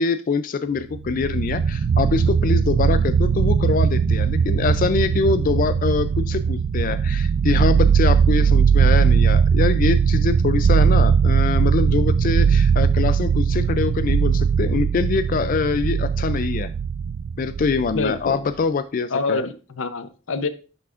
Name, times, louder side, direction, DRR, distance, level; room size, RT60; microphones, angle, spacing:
voice 1, 0.0-16.7 17.4-19.4, left 4 dB, 45° left, 12 dB, 0.3 m, -24 dB
sound 1, 0.9-18.3, right 6 dB, 70° right, 0.4 m, -19 dB
voice 2, 17.9-18.4 19.1-20.5, left 3 dB, 85° left, 11 dB, 0.7 m, -26 dB
10.5 x 5.9 x 2.5 m, 0.36 s
head